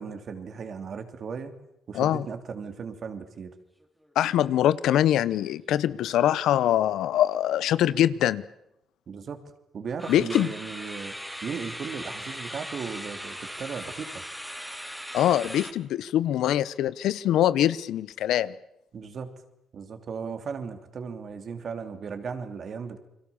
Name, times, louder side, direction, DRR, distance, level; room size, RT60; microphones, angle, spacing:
voice 1, 0.0-1.5 1.9-3.5 9.1-9.4 9.7-11.1 11.4-14.1 18.9-19.4 19.7-23.0, right 6 dB, 55° right, 8 dB, 3.1 m, -36 dB
voice 2, 1.9-2.3 4.1-8.4 10.1-10.5 15.1-18.5, left 12 dB, 80° left, 18 dB, 0.9 m, -23 dB
sound 1, 3.8-4.1 4.4-4.6 5.0-5.1 10.0-15.7, equal, ahead, 2.9 m, -39 dB
29.5 x 22.5 x 7.2 m, 0.83 s
cardioid pair, 90°, 0 cm